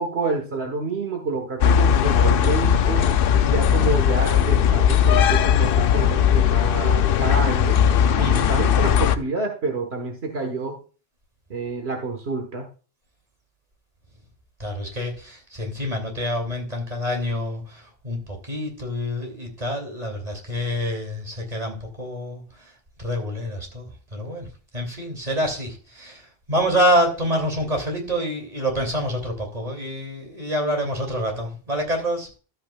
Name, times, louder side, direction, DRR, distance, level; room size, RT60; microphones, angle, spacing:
voice 1, 0.0-3.1 3.4-7.8 8.2-10.8 11.5-12.7, right 3 dB, 75° right, 4 dB, 1.7 m, -28 dB
sound 1, 1.6-9.2, left 8 dB, 65° left, 0.7 m, -18 dB
voice 2, 8.2-8.5 14.6-24.5 24.7-32.3, equal, 40° right, 2 dB, 2.9 m, -27 dB
13.0 x 8.5 x 2.3 m, 0.35 s
omnidirectional pair, 1.1 m